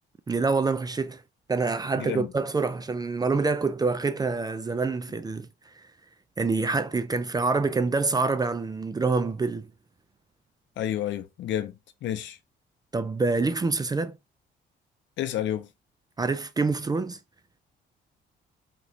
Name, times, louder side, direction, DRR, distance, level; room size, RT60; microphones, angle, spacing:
voice 1, 0.3-1.2 1.5-5.5 6.4-9.7 12.9-14.2 16.2-17.2, right 4 dB, 20° right, 0.3 m, -26 dB
voice 2, 2.0-2.3 10.8-12.4 15.2-15.7, left 11 dB, 70° left, 0.6 m, -30 dB
3.0 x 2.9 x 2.7 m
cardioid pair, 90°, 20 cm